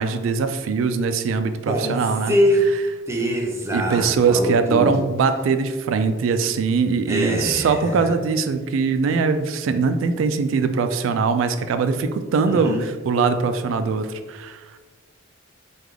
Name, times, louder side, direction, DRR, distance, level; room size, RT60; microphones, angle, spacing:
voice 1, 0.0-2.3 3.7-12.8 13.1-14.8, right 5 dB, 85° right, 9 dB, 0.3 m, -21 dB
voice 2, 1.7-2.6 3.1-5.0 7.1-8.1 12.5-12.8, equal, 15° right, 0 dB, 0.4 m, -23 dB
3.3 x 2.3 x 3.5 m, 1.3 s
head